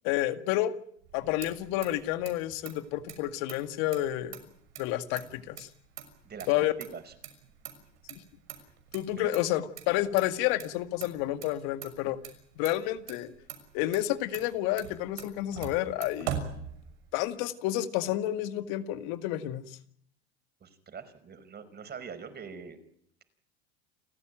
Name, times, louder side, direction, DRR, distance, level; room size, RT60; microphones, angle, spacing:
voice 1, 0.0-0.7 1.1-4.4 4.8-5.7 6.5-6.7 8.9-12.2 12.6-13.3 13.7-16.4 17.1-19.8, left 14 dB, 65° left, 10 dB, 2.1 m, -30 dB
Motor vehicle (road), 1.0-17.3, right 8 dB, 80° right, 6.3 m, -44 dB
voice 2, 6.2-7.1 9.2-9.3 20.6-22.8, right 6 dB, 30° right, 11 dB, 5.2 m, -43 dB
30.0 x 14.5 x 9.1 m, 0.69 s
hypercardioid pair, 90°, 32 cm